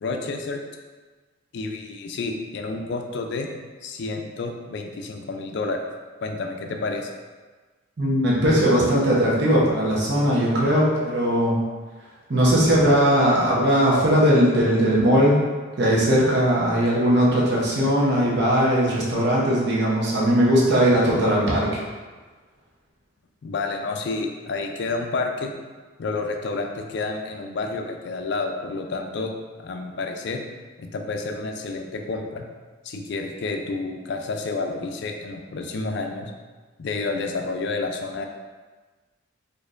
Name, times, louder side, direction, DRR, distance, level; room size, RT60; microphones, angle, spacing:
voice 1, 0.0-0.6 1.5-3.5 3.8-5.8 6.2-7.1 23.4-25.5 26.0-29.3 29.6-30.4 30.8-32.4 32.8-36.3 36.8-38.3, left 3 dB, 60° left, 4 dB, 0.4 m, -29 dB
voice 2, 8.0-11.6 12.3-15.4 15.8-21.7, equal, 55° right, -6 dB, 0.8 m, -19 dB
4.3 x 2.6 x 2.4 m, 1.4 s
head